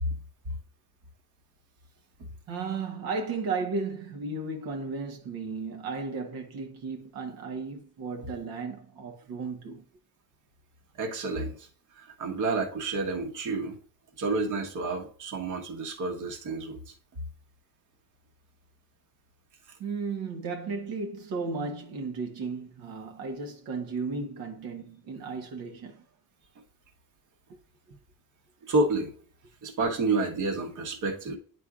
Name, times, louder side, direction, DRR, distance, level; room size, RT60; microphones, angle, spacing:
voice 1, 2.5-9.8 19.8-26.0 27.5-27.6, right 4 dB, 85° right, 1.3 m, -34 dB
voice 2, 11.0-11.7 11.9-13.8 14.2-16.9 28.6-29.1 29.6-31.4, right 3 dB, 55° right, 1.4 m, -29 dB
9.7 x 4.6 x 2.4 m
cardioid pair, 150°, 35 cm